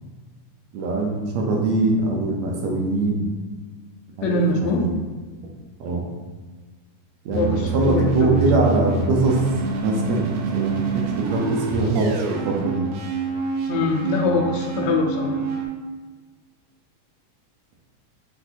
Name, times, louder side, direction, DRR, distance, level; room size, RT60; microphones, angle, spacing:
voice 1, 0.7-3.3 4.2-5.0 5.8-6.0 7.3-10.2 10.5-12.8, right 2 dB, 75° right, -1 dB, 1.7 m, -22 dB
voice 2, 4.2-4.8 7.3-8.6 13.7-15.4, left 3 dB, 80° left, 1 dB, 1.6 m, -23 dB
sound 1, 7.3-15.7, right 4 dB, 90° right, 2.1 m, -27 dB
6.0 x 2.6 x 2.7 m, 1.4 s
omnidirectional pair, 3.6 m